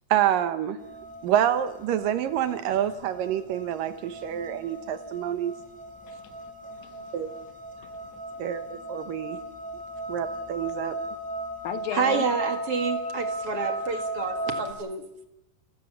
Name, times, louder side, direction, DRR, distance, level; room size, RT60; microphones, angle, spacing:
voice 1, 0.1-0.8 1.2-5.5 7.1-7.3 8.4-9.4 10.1-11.0, right 10 dB, 75° right, 11 dB, 2.7 m, -27 dB
sound 1, 0.8-14.7, right 1 dB, ahead, 2.7 m, -36 dB
voice 2, 6.1-7.2 7.8-8.4 11.6-12.3, left 11 dB, 75° left, 11 dB, 2.8 m, -38 dB
voice 3, 11.9-15.0, right 5 dB, 45° right, 6 dB, 2.4 m, -28 dB
29.0 x 16.0 x 7.1 m, 0.89 s
omnidirectional pair, 4.1 m